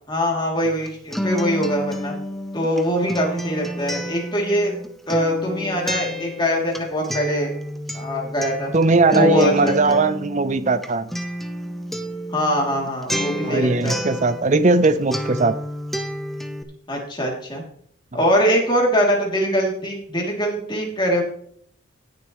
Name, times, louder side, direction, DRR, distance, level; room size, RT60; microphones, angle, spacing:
voice 1, 0.1-2.1 2.5-4.7 5.1-7.5 7.9-8.7 9.1-10.0 12.3-14.0 16.9-17.6 18.1-21.2, equal, 20° left, -1 dB, 2.8 m, -22 dB
Acoustic guitar, 0.6-14.9 15.1-16.6, equal, ahead, 0.7 m, -30 dB
voice 2, 8.7-11.1 13.4-15.6, right 3 dB, 35° right, 13 dB, 0.6 m, -19 dB
18.0 x 6.7 x 3.1 m, 0.62 s
head